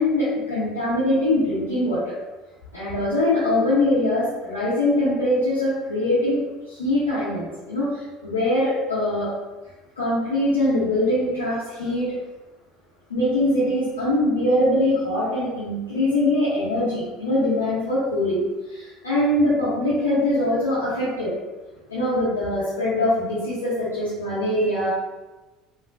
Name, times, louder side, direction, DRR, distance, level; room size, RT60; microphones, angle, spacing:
voice 1, 0.0-2.1 2.7-6.4 6.7-9.3 10.0-12.1 13.1-18.4 18.7-21.3 21.9-24.9, left 1 dB, 80° left, -12 dB, 0.8 m, -22 dB
3.4 x 2.2 x 2.5 m, 1.1 s
figure-of-eight pair, 65°, 0 cm